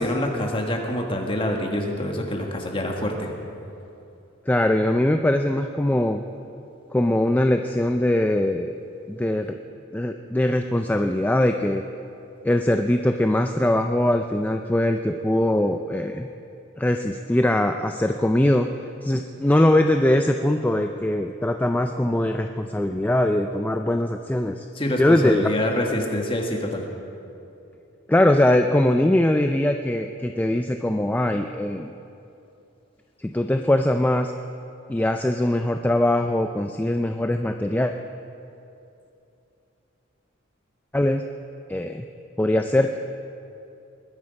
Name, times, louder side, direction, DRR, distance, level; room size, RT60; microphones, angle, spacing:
voice 1, 0.0-3.3 24.7-26.9, left 1 dB, 25° left, 1 dB, 1.5 m, -26 dB
voice 2, 4.5-6.2 6.9-8.7 9.1-9.6 9.9-11.8 12.4-16.3 16.8-18.7 19.0-24.7 25.0-25.5 28.1-31.9 33.2-34.3 34.9-37.9 40.9-41.2 41.7-42.1 42.4-43.0, left 1 dB, 10° left, 6 dB, 0.3 m, -21 dB
21.0 x 9.6 x 5.3 m, 2.7 s
head